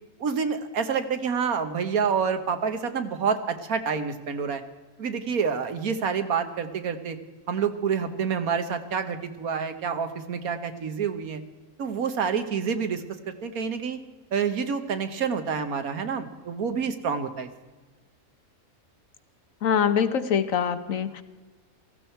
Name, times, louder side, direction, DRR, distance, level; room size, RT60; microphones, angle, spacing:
voice 1, 0.2-4.6 5.0-7.2 7.5-11.4 11.8-14.0 14.3-17.5, right 6 dB, 75° right, 9 dB, 1.6 m, -28 dB
voice 2, 19.6-21.2, left 7 dB, 65° left, 11 dB, 1.2 m, -24 dB
17.5 x 14.5 x 4.5 m, 1.3 s
omnidirectional pair, 1.5 m